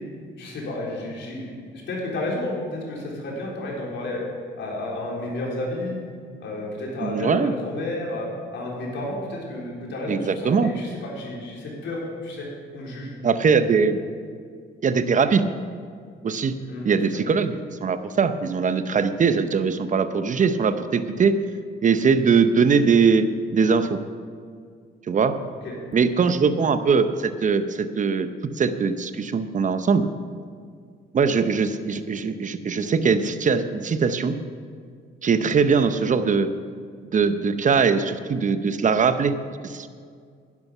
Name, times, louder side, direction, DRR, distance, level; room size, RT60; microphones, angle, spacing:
voice 1, 0.4-4.2 4.6-6.0 6.4-12.5 12.7-13.1 16.7-16.8 17.1-17.2 25.6-25.7 26.8-26.9, left 1 dB, 70° left, -4 dB, 4.0 m, -31 dB
voice 2, 7.0-7.5 10.1-10.7 13.2-14.0 14.8-15.5 16.2-16.6 16.8-21.4 21.8-23.3 23.5-24.0 25.1-25.4 25.9-30.1 31.1-34.4 35.2-36.5 37.1-39.4 39.6-39.9, right 5 dB, 40° right, 11 dB, 0.8 m, -21 dB
11.0 x 11.0 x 5.6 m, 2.1 s
cardioid pair, 90°, 20 cm